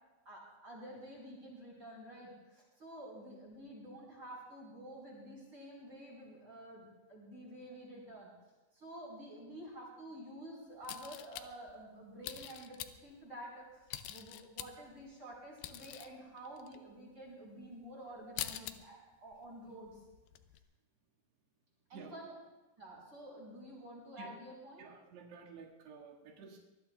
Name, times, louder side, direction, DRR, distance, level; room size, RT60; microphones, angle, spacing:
voice 1, 0.3-8.3 8.7-20.0 21.9-22.4 22.8-24.8, right 1 dB, 30° right, -4 dB, 5.3 m, -50 dB
sound 1, 10.8-11.7 12.2-13.1 13.9-15.0 15.3-16.1 16.4-16.8 17.3-17.4 17.8-17.9 18.1-18.7 19.1-19.4 19.7-20.6, left 13 dB, 80° left, 2.5 m, -44 dB
voice 2, 24.8-26.6, right 5 dB, 75° right, -3 dB, 4.1 m, -52 dB
24.5 x 20.5 x 2.4 m, 1.1 s
omnidirectional pair, 4.8 m